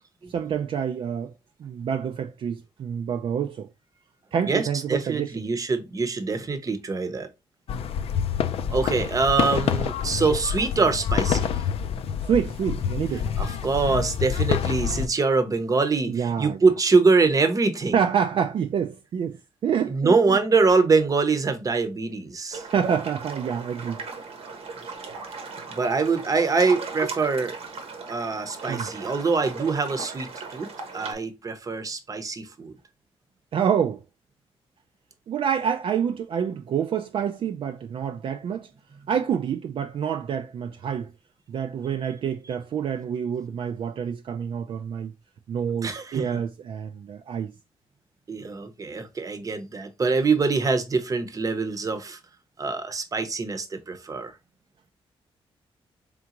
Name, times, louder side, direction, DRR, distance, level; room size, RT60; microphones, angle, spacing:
voice 1, 0.3-1.3 1.6-3.7 4.3-5.5 12.2-13.3 16.1-16.6 17.9-20.4 22.7-24.0 28.7-28.9 33.5-34.0 35.3-38.7 39.1-41.1 41.5-45.1 45.5-47.5, right 7 dB, 60° right, 0.4 m, -27 dB
voice 2, 4.4-7.3 8.7-11.6 13.4-18.0 19.9-22.6 25.7-27.6 28.1-32.7 45.8-46.3 48.3-52.2 52.6-54.4, right 4 dB, 35° right, 0.8 m, -24 dB
sound 1, 7.7-15.1, left 8 dB, 75° left, 0.4 m, -27 dB
sound 2, 22.5-31.1, right 4 dB, 75° right, 1.0 m, -37 dB
3.7 x 3.5 x 2.9 m
cardioid pair, 100°, 10 cm